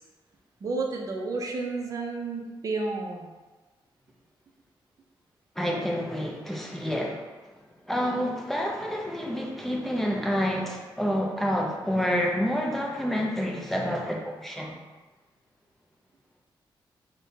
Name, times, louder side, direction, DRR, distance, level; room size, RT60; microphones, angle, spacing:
voice 1, 0.6-3.3, right 3 dB, 40° right, 0 dB, 0.6 m, -31 dB
voice 2, 5.6-7.3 7.9-14.8, equal, 5° left, -1 dB, 0.5 m, -28 dB
6.6 x 2.2 x 2.7 m, 1.3 s
wide cardioid pair, 145°, 9 cm